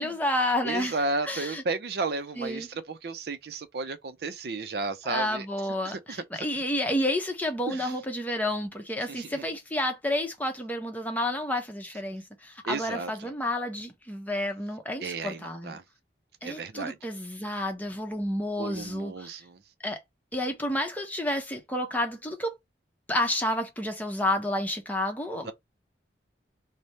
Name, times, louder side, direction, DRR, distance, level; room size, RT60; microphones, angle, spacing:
voice 1, 0.0-1.0 1.2-1.6 2.4-2.7 5.0-15.8 16.4-19.4 19.8-20.0 20.3-22.6 23.1-25.5, left 1 dB, 10° left, 0.7 m, -30 dB
voice 2, 0.6-5.5 5.8-6.5 7.7-7.9 9.1-9.5 12.7-13.3 15.0-15.8 16.4-17.0 18.6-19.6 25.4-25.5, right 3 dB, 60° right, 0.5 m, -33 dB
3.3 x 2.1 x 4.0 m
head